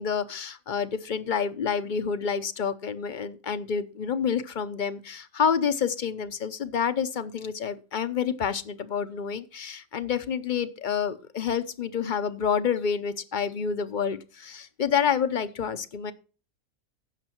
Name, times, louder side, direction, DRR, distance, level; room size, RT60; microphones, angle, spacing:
voice 1, 0.0-16.1, left 7 dB, 40° left, 13 dB, 0.8 m, -28 dB
15.0 x 6.7 x 4.4 m, 0.37 s
omnidirectional pair, 1.5 m